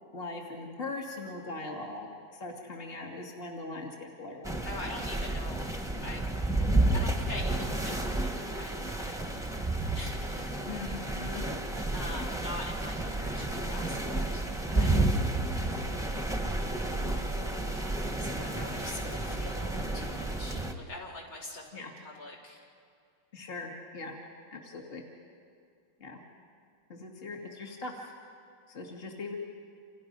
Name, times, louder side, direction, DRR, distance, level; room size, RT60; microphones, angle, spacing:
voice 1, 0.1-4.5 10.6-11.4 14.7-15.1 21.7-21.9 23.3-24.2 24.5-25.0 26.0-26.2 26.9-28.1 28.7-29.4, left 3 dB, 30° left, 0 dB, 2.3 m, -40 dB
sound 1, 4.4-20.7, right 2 dB, ahead, 1.0 m, -31 dB
voice 2, 4.6-5.7 6.0-6.2 6.9-9.2 9.9-10.5 11.9-15.0 17.6-22.7, left 1 dB, 70° left, -3 dB, 4.7 m, -44 dB
29.5 x 28.0 x 5.4 m, 2.3 s
omnidirectional pair, 2.1 m